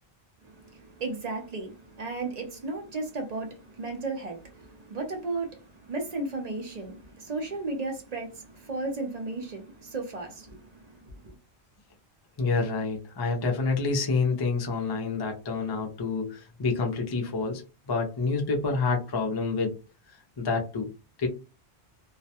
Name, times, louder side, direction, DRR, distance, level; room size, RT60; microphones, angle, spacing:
voice 1, 0.4-11.3, right 3 dB, 45° right, 0.6 m, -35 dB
voice 2, 12.4-19.8 20.4-20.9 21.2-21.3, left 4 dB, 35° left, 0.4 m, -28 dB
2.4 x 2.1 x 2.7 m
omnidirectional pair, 1.1 m